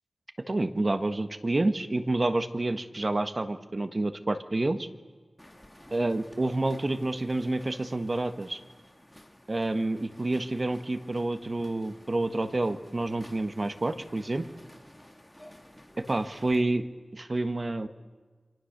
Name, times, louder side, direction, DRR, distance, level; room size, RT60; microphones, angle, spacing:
voice 1, 0.5-4.9 5.9-8.6 9.5-14.5 16.0-17.9, right 2 dB, 35° right, 8 dB, 1.4 m, -28 dB
sound 1, 5.4-16.6, left 1 dB, 10° left, 2.9 m, -53 dB
29.0 x 26.0 x 6.7 m, 1.4 s
wide cardioid pair, 100°, 0 cm